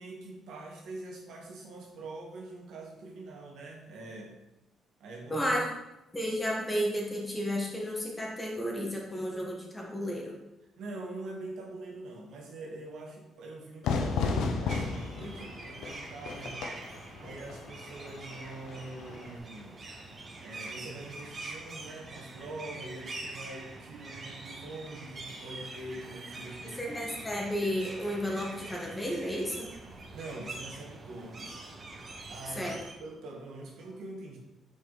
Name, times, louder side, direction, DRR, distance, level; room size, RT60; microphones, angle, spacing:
voice 1, 0.0-4.3 5.0-5.5 10.8-19.9 20.4-27.0 30.1-31.6 32.3-32.7 33.0-34.4, right 2 dB, 80° right, -1 dB, 1.6 m, -44 dB
voice 2, 5.3-5.6 6.1-10.3 26.8-29.7 32.5-32.8, equal, 15° left, -2 dB, 1.7 m, -32 dB
Fire / Fireworks, 13.8-19.4, left 4 dB, 85° left, 0.7 m, -34 dB
sound 1, 14.7-32.9, right 2 dB, 40° right, 1.2 m, -45 dB
6.1 x 4.9 x 4.1 m, 0.97 s
cardioid pair, 90°, 0 cm